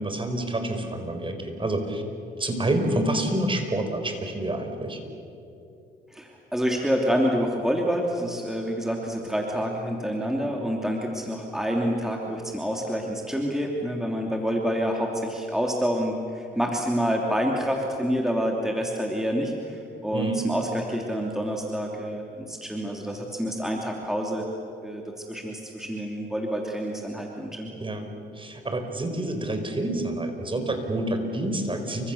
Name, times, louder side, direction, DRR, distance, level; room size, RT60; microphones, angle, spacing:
voice 1, 0.0-2.0 2.4-5.0 14.3-14.4 20.1-20.4 27.8-28.0 28.4-32.1, right 1 dB, 25° right, 6 dB, 4.7 m, -28 dB
voice 2, 6.1-24.4 24.8-27.7, equal, ahead, 0 dB, 3.0 m, -27 dB
29.0 x 25.0 x 7.1 m, 2.7 s
cardioid pair, 90°, 20 cm